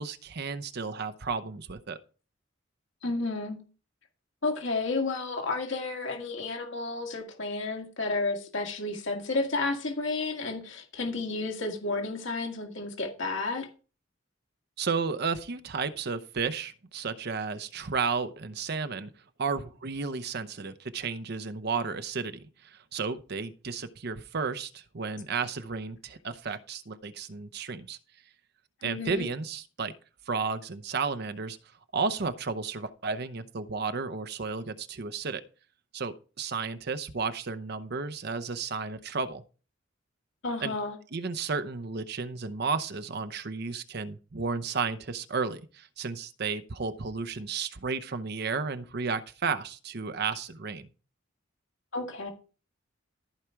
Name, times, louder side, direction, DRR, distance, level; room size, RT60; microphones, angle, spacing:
voice 1, 0.0-2.0 14.8-19.1 19.4-28.0 28.8-29.9 30.3-31.6 31.9-35.4 35.9-39.4 40.6-40.7 41.1-50.9, right 5 dB, 55° right, 0.7 m, -33 dB
voice 2, 3.0-3.6 4.4-13.7 28.8-29.3 40.4-41.0 51.9-52.3, left 3 dB, 70° left, 1.9 m, -31 dB
14.5 x 4.9 x 4.5 m
head